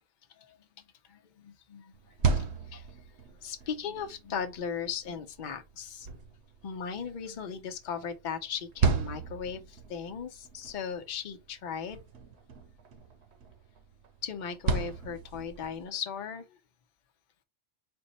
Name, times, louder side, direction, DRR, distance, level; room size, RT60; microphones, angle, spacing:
voice 1, 1.1-2.0 2.7-2.8 3.4-6.1 6.6-9.6 9.9-12.0 14.2-16.4, left 7 dB, 50° left, 0.8 m, -37 dB
sound 1, 1.9-15.9, right 5 dB, 80° right, 1.0 m, -36 dB
4.4 x 2.0 x 4.0 m
omnidirectional pair, 1.1 m